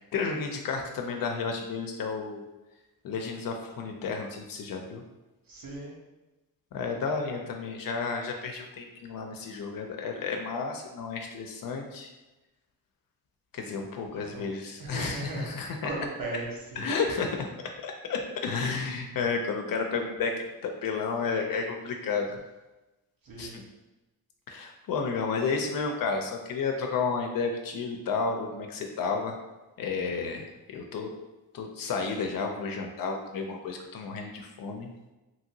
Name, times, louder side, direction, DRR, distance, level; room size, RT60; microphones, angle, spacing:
voice 1, 0.1-2.4 3.0-5.0 6.7-12.1 13.5-15.8 16.8-17.5 17.8-22.4 23.4-23.5 24.5-29.4 29.8-31.1 31.5-34.9, left 4 dB, 60° left, 3 dB, 0.5 m, -32 dB
voice 2, 5.4-5.9 13.7-14.4 14.8-16.9 23.2-23.6, right 2 dB, 60° right, -3 dB, 1.0 m, -38 dB
2.9 x 2.7 x 2.7 m, 1.1 s
cardioid pair, 80°, 38 cm